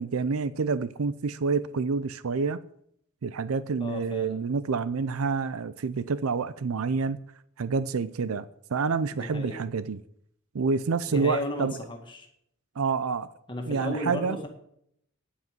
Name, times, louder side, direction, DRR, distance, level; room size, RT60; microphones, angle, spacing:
voice 1, 0.0-2.6 3.2-7.2 7.6-10.0 10.5-11.7 12.8-13.3 13.7-14.4, right 4 dB, 90° right, 0.5 m, -28 dB
voice 2, 3.8-4.4 9.1-9.6 11.1-12.3 13.5-14.5, left 1 dB, 25° left, 1.8 m, -34 dB
9.9 x 8.1 x 9.1 m
head